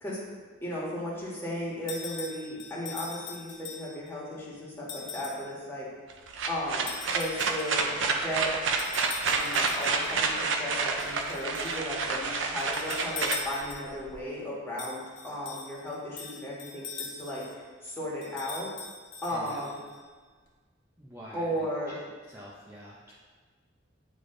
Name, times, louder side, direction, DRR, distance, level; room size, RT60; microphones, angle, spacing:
voice 1, 0.6-5.9 6.5-6.9 7.1-7.9 8.2-8.5 9.3-18.7 19.2-19.8 21.3-22.0, equal, 10° left, -7 dB, 1.8 m, -35 dB
sound 1, 1.9-4.1 4.9-5.5 6.9-7.9 8.8-10.2 11.0-11.8 12.6-14.0 14.8-17.6 18.2-20.0, left 4 dB, 65° left, 1.1 m, -41 dB
sound 2, 6.1-14.1, right 4 dB, 65° right, 0.6 m, -29 dB
voice 2, 19.3-19.6 21.0-21.9 22.3-23.1, equal, 15° right, -7 dB, 0.7 m, -47 dB
9.5 x 3.5 x 3.9 m, 1.4 s
head